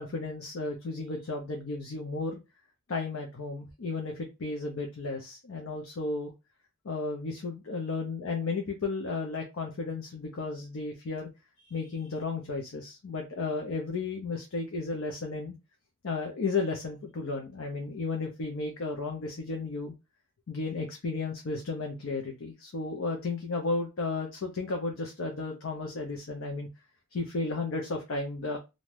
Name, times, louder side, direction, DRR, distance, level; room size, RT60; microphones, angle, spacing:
voice 1, 0.0-2.4 2.9-4.1 4.4-6.3 6.8-11.3 11.7-15.5 16.0-19.9 20.5-26.7 27.1-28.6, left 3 dB, 80° left, 2 dB, 0.6 m, -33 dB
2.6 x 2.2 x 3.2 m, 0.25 s
head